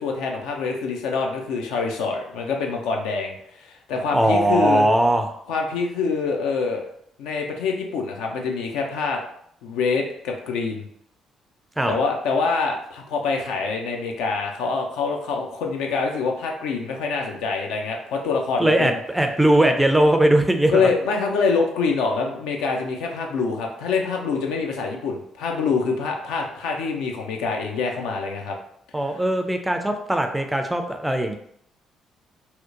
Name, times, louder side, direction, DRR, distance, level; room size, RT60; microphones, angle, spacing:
voice 1, 0.0-4.9 5.5-6.9 7.2-9.2 9.6-10.9 11.9-19.0 20.7-28.5, left 4 dB, 65° left, 1 dB, 0.3 m, -25 dB
voice 2, 4.1-5.2 11.8-12.0 18.6-20.9 28.9-31.4, right 1 dB, 10° right, 5 dB, 0.4 m, -20 dB
2.8 x 2.1 x 2.4 m, 0.69 s
figure-of-eight pair, 45°, 0 cm